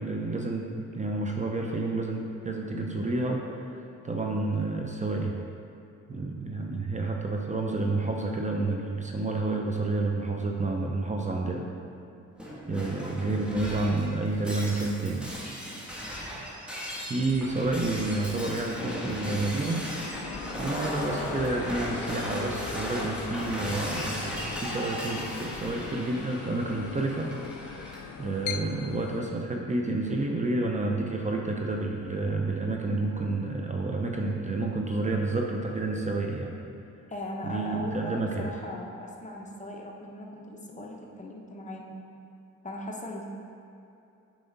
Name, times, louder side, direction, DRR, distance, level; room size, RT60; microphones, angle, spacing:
voice 1, 0.0-3.7 4.0-5.4 6.1-11.7 12.7-15.3 17.0-19.9 20.6-24.3 24.6-27.4 28.2-36.6 37.4-38.5, right 2 dB, 25° right, 0 dB, 0.7 m, -29 dB
Shatter, 12.4-28.0, equal, 5° right, 1.4 m, -37 dB
sound 1, 17.6-29.2, left 7 dB, 80° left, 0.5 m, -40 dB
voice 2, 37.1-42.0 42.6-43.3, left 1 dB, 25° left, 0 dB, 1.0 m, -39 dB
7.7 x 4.8 x 4.0 m, 2.8 s
cardioid pair, 90°, 30 cm